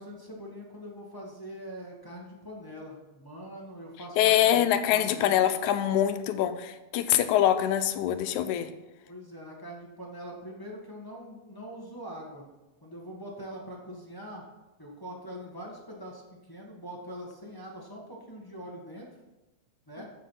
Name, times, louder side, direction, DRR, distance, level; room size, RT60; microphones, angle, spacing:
voice 1, 0.0-5.5 9.1-12.4 12.8-14.4 14.8-19.1 19.9-20.0, equal, 15° left, -3 dB, 0.9 m, -43 dB
voice 2, 4.2-8.7, left 11 dB, 85° left, 10 dB, 2.1 m, -24 dB
13.5 x 5.0 x 5.6 m, 1.0 s
omnidirectional pair, 3.4 m